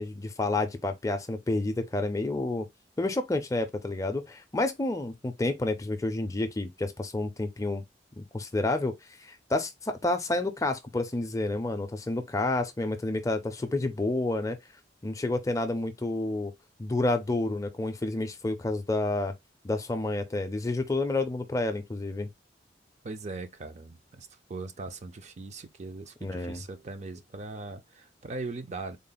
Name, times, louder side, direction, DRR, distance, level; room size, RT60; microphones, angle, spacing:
voice 1, 0.0-2.7 3.0-7.8 8.2-8.9 9.2-14.6 15.0-16.5 16.8-19.3 19.6-22.3 26.2-26.6, left 2 dB, 20° left, 0.4 m, -29 dB
voice 2, 23.0-29.0, right 3 dB, 40° right, 0.4 m, -40 dB
3.7 x 2.0 x 3.9 m
head